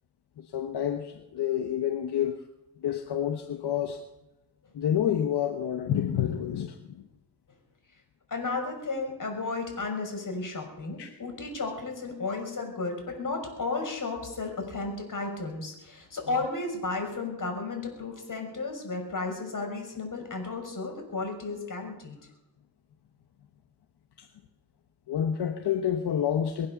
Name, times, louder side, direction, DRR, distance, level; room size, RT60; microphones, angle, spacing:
voice 1, 0.4-2.4 2.8-4.0 4.7-7.0 11.0-11.1 24.2-24.3 25.1-26.7, left 9 dB, 85° left, 6 dB, 1.2 m, -28 dB
voice 2, 8.3-22.2, left 3 dB, 50° left, 3 dB, 6.1 m, -33 dB
23.0 x 8.7 x 7.1 m, 0.96 s
cardioid pair, 65°, 39 cm